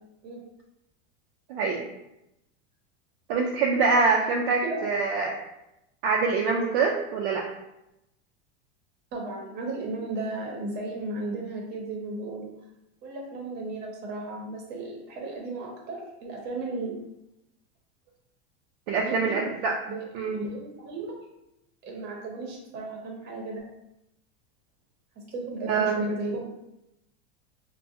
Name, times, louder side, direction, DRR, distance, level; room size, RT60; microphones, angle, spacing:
voice 1, 1.5-1.8 3.3-5.3 6.0-7.5 18.9-19.7 20.1-20.4 25.7-26.0, right 4 dB, 55° right, 0 dB, 0.5 m, -24 dB
voice 2, 9.1-12.5 13.0-17.0 19.0-19.4 19.8-21.1 21.8-23.6 25.3-26.5, right 2 dB, 30° right, 0 dB, 0.8 m, -34 dB
4.5 x 2.2 x 2.6 m, 0.88 s
supercardioid pair, 155°, 33 cm